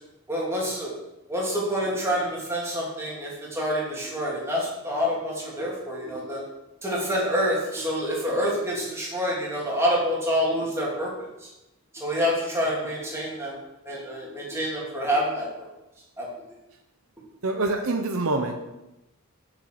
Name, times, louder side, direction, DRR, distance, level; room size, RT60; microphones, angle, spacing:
voice 1, 0.3-1.0 1.3-6.4 6.8-11.1 11.9-13.6 13.9-15.7 16.2-16.3, equal, 10° right, -5 dB, 2.7 m, -27 dB
voice 2, 17.4-18.6, right 2 dB, 65° right, 3 dB, 0.9 m, -25 dB
7.2 x 7.1 x 6.6 m, 0.95 s
head